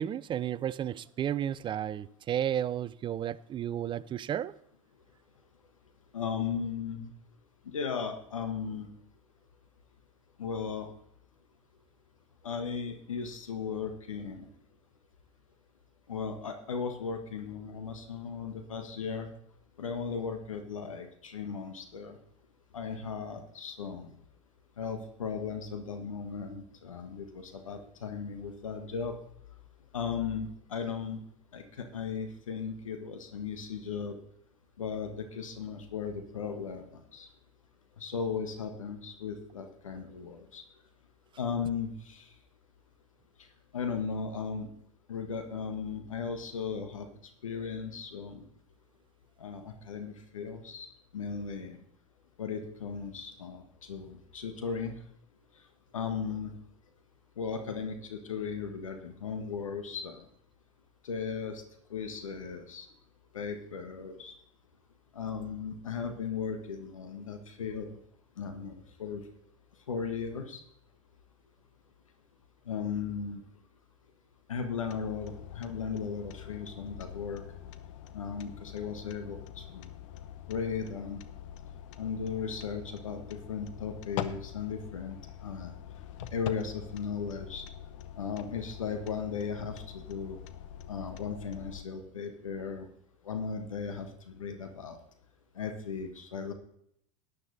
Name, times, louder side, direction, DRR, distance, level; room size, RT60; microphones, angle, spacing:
voice 1, 0.0-4.5, right 10 dB, 30° right, 0.5 m, -32 dB
voice 2, 6.1-7.1 7.6-8.9 10.4-10.9 12.4-14.5 16.1-19.3 19.8-22.2 22.7-24.1 24.8-29.2 29.9-31.2 31.5-34.1 34.8-37.3 38.0-40.6 41.4-42.3 43.7-44.7 45.1-47.1 47.4-48.5 49.4-50.9 51.1-51.8 52.4-54.9 55.9-56.5 57.4-60.2 61.0-61.6 61.9-62.9 63.3-64.3 65.1-68.0 68.4-68.7 69.0-69.2 69.9-70.6 72.7-73.4 74.5-77.4 78.1-79.9 80.5-81.2 82.0-85.2 85.4-85.7 86.2-87.7 88.2-90.4 90.9-92.9 93.2-95.0 95.5-96.5, left 6 dB, 90° left, 1.4 m, -36 dB
sound 1, 74.8-91.9, left 11 dB, 70° left, 0.9 m, -44 dB
12.0 x 9.6 x 4.0 m
hypercardioid pair, 85°, 16 cm